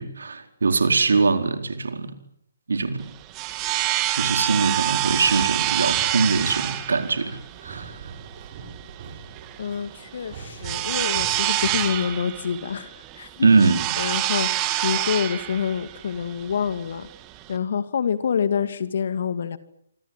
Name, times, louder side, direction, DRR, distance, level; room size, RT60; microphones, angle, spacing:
voice 1, 0.0-2.1 2.7-3.0 4.2-8.0 13.4-13.8, right 4 dB, 70° right, 7 dB, 4.4 m, -22 dB
sound 1, 3.0-17.6, right 15 dB, 25° right, 2.4 m, -27 dB
sound 2, 4.3-12.1, right 5 dB, 40° right, 6.2 m, -42 dB
voice 2, 9.6-13.5 14.0-17.1 17.5-19.6, left 7 dB, 55° left, 12 dB, 2.5 m, -27 dB
28.0 x 25.5 x 7.5 m, 0.70 s
figure-of-eight pair, 135°, 0 cm